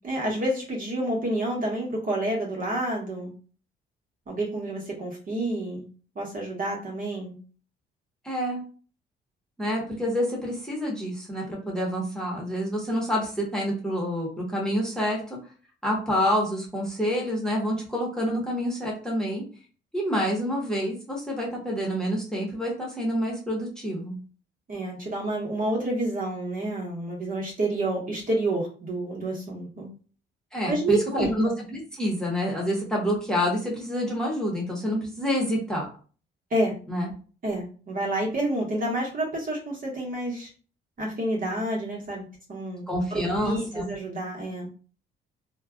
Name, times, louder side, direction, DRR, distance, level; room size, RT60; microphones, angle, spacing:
voice 1, 0.0-3.3 4.3-5.8 6.1-7.3 24.7-29.9 30.6-31.3 36.5-36.7 37.4-40.5 41.0-42.2 42.5-44.7, right 1 dB, 45° right, -2 dB, 1.2 m, -29 dB
voice 2, 8.2-8.6 9.6-15.4 15.8-19.4 19.9-24.1 30.5-35.9 36.9-37.1 42.9-43.9, equal, 5° left, -3 dB, 1.1 m, -27 dB
3.2 x 2.2 x 2.3 m, 0.38 s
cardioid pair, 90°, 20 cm